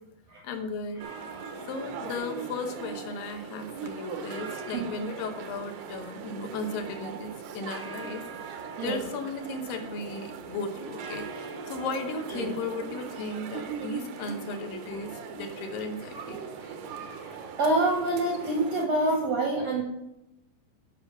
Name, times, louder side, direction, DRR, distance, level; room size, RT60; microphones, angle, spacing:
voice 1, 0.4-1.1 1.7-16.4, left 3 dB, 70° left, 5 dB, 2.6 m, -36 dB
sound 1, 1.0-18.9, right 5 dB, 85° right, 3.1 m, -39 dB
voice 2, 17.6-19.8, right 2 dB, 60° right, 0 dB, 1.8 m, -26 dB
9.8 x 5.7 x 6.9 m, 0.89 s
omnidirectional pair, 4.6 m